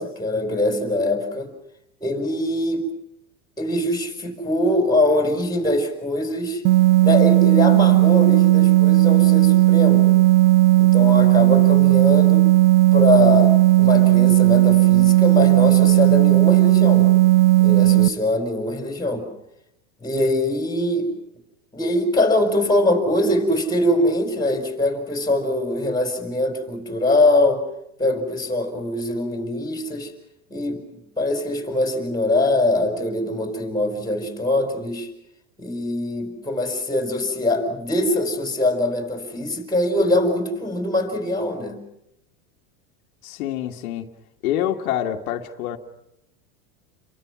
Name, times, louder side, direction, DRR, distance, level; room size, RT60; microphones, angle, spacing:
voice 1, 0.0-1.5 2.0-2.9 3.6-6.6 7.0-10.2 10.8-12.4 12.9-17.1 17.6-19.3 20.0-21.1 21.7-27.6 28.0-30.1 30.5-30.8 31.2-35.1 35.6-41.8, left 1 dB, 10° left, 4.7 m, -22 dB
sound 1, 6.6-18.1, right 17 dB, 65° right, 1.3 m, -15 dB
voice 2, 43.2-44.1 44.4-45.8, left 11 dB, 80° left, 2.0 m, -26 dB
30.0 x 23.5 x 6.1 m
supercardioid pair, 135°, 43 cm